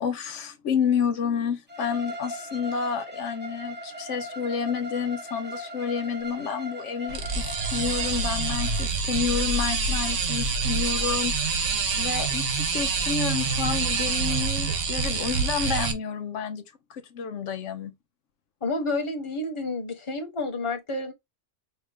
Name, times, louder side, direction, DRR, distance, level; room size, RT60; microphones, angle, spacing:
voice 1, 0.0-16.6 16.9-17.9, left 7 dB, 80° left, 1.0 m, -30 dB
Bowed string instrument, 1.7-8.9, left 1 dB, 10° right, 0.8 m, -38 dB
sound 1, 7.1-15.9, right 4 dB, 85° right, 1.3 m, -26 dB
voice 2, 18.6-21.1, left 2 dB, 25° left, 1.1 m, -30 dB
5.3 x 2.5 x 3.4 m
omnidirectional pair, 1.2 m